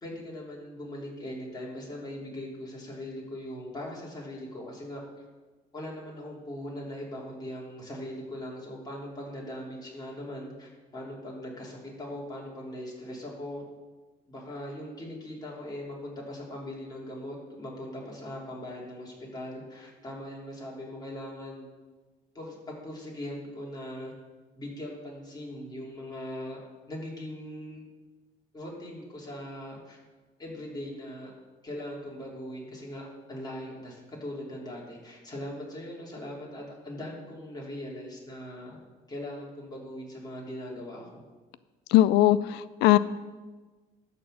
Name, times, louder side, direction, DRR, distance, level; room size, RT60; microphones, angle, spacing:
voice 1, 0.0-5.2 5.7-13.6 14.3-21.7 22.3-24.1 24.6-26.6 26.9-27.8 28.5-30.0 30.4-31.3 31.6-38.8 39.1-41.2, left 1 dB, 25° left, 3.4 m, -40 dB
voice 2, 41.9-43.0, left 14 dB, 85° left, 0.4 m, -20 dB
12.5 x 4.3 x 7.7 m
cardioid pair, 110°, 17 cm